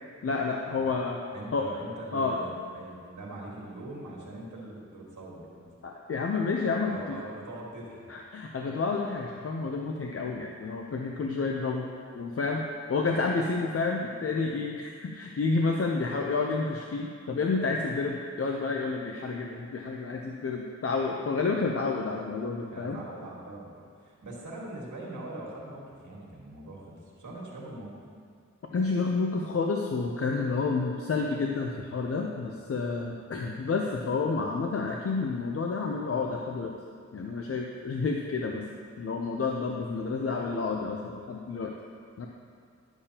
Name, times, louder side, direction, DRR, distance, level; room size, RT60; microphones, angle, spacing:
voice 1, 0.2-1.2 1.5-1.7 2.1-2.4 5.8-7.2 8.1-11.9 12.1-12.6 12.9-23.0 28.7-36.7 37.1-38.7 39.0-41.7 42.2-42.3, left 4 dB, 50° left, 1 dB, 0.6 m, -30 dB
voice 2, 1.3-5.7 6.9-8.0 22.7-27.9, right 1 dB, 90° right, -3 dB, 1.6 m, -42 dB
11.5 x 6.9 x 2.9 m, 2.1 s
cardioid pair, 65°, 29 cm